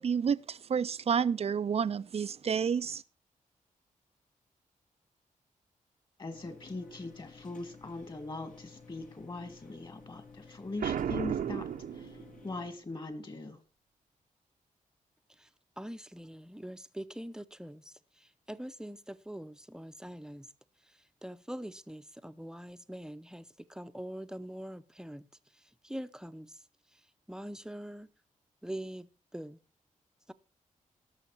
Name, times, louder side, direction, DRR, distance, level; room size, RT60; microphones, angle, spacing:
voice 1, 0.0-3.0, right 7 dB, 45° right, 0.4 m, -30 dB
voice 2, 6.2-11.7 11.9-12.2 12.4-13.6, left 2 dB, 35° left, 2.2 m, -41 dB
sound 1, 6.3-12.7, left 4 dB, 70° left, 2.4 m, -54 dB
Boom, 10.8-12.6, right 9 dB, 90° right, 1.0 m, -34 dB
voice 3, 15.8-20.5 20.8-25.3 25.5-26.6 26.9-27.0 27.3-28.1 28.6-29.6 30.3-30.4, right 1 dB, 5° right, 0.7 m, -44 dB
18.0 x 6.4 x 4.6 m
cardioid pair, 85°, 14 cm